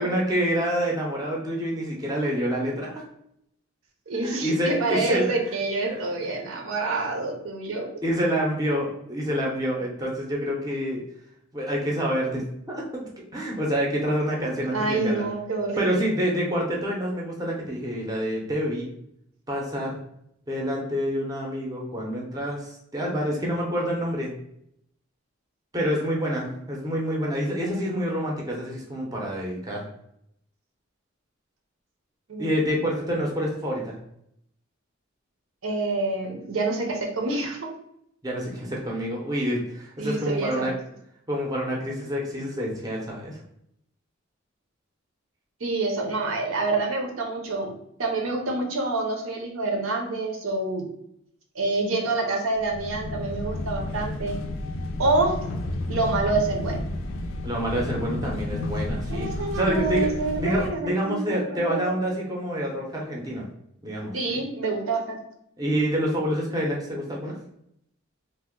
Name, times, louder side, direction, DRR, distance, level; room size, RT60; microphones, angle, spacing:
voice 1, 0.0-3.0 4.1-5.4 5.8-6.1 8.0-11.0 11.5-15.3 15.8-18.9 19.5-20.0 20.5-24.3 25.7-29.9 32.4-34.0 38.2-40.7 41.3-43.4 57.4-60.1 60.4-63.4 63.8-64.4 65.6-67.4, equal, 15° right, -2 dB, 0.5 m, -27 dB
voice 2, 4.1-7.9 14.7-16.1 32.3-32.5 35.6-37.7 40.0-40.7 45.6-50.9 51.5-54.4 55.0-55.4 55.9-56.8 59.1-61.9 64.1-65.2, right 3 dB, 80° right, 2 dB, 0.6 m, -27 dB
sound 1, 52.5-60.7, left 1 dB, 70° left, 0.4 m, -31 dB
2.8 x 2.0 x 3.6 m, 0.74 s
head